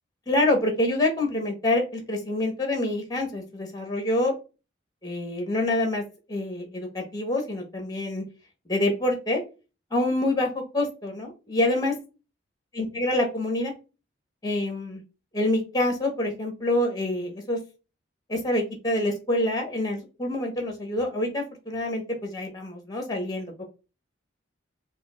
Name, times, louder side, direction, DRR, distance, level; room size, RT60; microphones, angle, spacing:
voice 1, 0.3-4.3 5.0-6.0 6.3-8.2 8.7-9.4 9.9-11.9 12.7-13.7 14.4-15.0 15.3-17.6 18.3-23.5, left 1 dB, 20° left, 3 dB, 1.1 m, -26 dB
4.6 x 2.4 x 2.4 m, 0.31 s
head